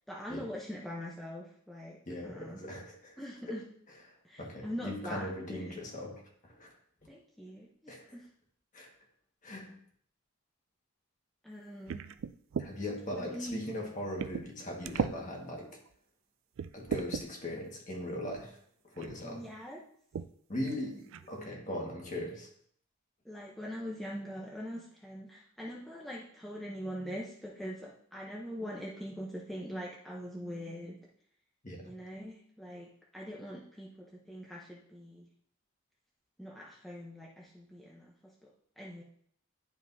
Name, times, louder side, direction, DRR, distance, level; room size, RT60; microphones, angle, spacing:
voice 1, 0.1-2.0 2.2-2.6 3.2-3.6 4.2-5.8 7.1-8.3 11.4-12.0 13.1-13.7 19.2-19.8 23.2-31.0 31.8-35.3 36.4-39.0, equal, ahead, -4 dB, 0.7 m, -43 dB
voice 2, 2.1-3.2 3.5-3.6 4.4-6.7 7.9-8.1 8.7-8.9 9.4-9.7 12.6-15.8 16.7-18.6 18.9-19.4 20.5-22.5 31.6-31.9, left 1 dB, 35° left, 0 dB, 1.6 m, -39 dB
sound 1, 11.9-12.7 13.5-13.6 14.2-14.5 14.8-15.2 15.9-16.0 16.6-17.3 18.3-18.5 19.0-19.2 20.1-20.3 20.7-20.8 21.1-21.5, right 6 dB, 70° right, 0.3 m, -36 dB
11.0 x 5.0 x 2.7 m, 0.64 s
head